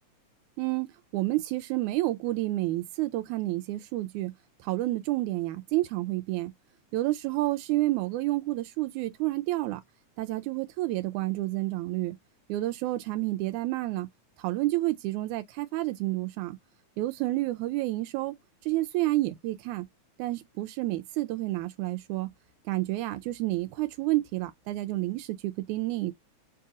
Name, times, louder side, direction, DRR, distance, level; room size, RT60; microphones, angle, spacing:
voice 1, 0.6-0.9 1.1-4.3 4.6-6.5 6.9-9.8 10.2-12.2 12.5-14.1 14.4-16.6 17.0-18.3 18.6-19.9 20.2-22.3 22.7-26.1, right 18 dB, 90° right, 2.0 m, -29 dB
4.6 x 2.8 x 3.5 m
omnidirectional pair, 3.4 m